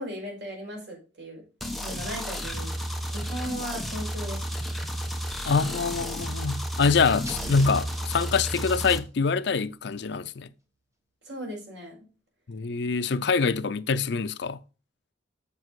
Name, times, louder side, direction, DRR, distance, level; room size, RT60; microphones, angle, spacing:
voice 1, 0.0-1.4 1.8-2.7 3.1-4.4 11.2-12.0, equal, 75° right, 5.1 m, -37 dB
sound 1, 1.6-9.0, equal, ahead, 1.0 m, -32 dB
voice 2, 5.5-10.5 12.5-14.6, left 5 dB, 65° left, 0.5 m, -25 dB
sound 2, 7.2-9.1, right 2 dB, 15° right, 1.3 m, -41 dB
7.2 x 7.1 x 4.7 m
head